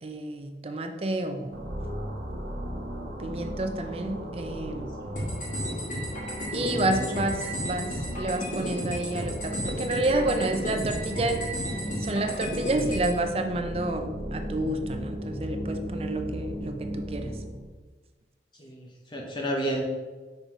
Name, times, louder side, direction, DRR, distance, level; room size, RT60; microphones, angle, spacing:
voice 1, 0.0-1.6 3.2-5.2 6.5-11.4 12.0-17.3, right 2 dB, 35° right, 6 dB, 0.5 m, -30 dB
sound 1, 1.5-17.7, equal, 75° right, 1.1 m, -36 dB
sound 2, 5.2-13.1, equal, 40° left, 2.0 m, -34 dB
voice 2, 6.6-7.0 18.6-19.8, right 1 dB, 25° left, 0 dB, 0.7 m, -31 dB
5.8 x 4.0 x 4.6 m, 1.3 s
head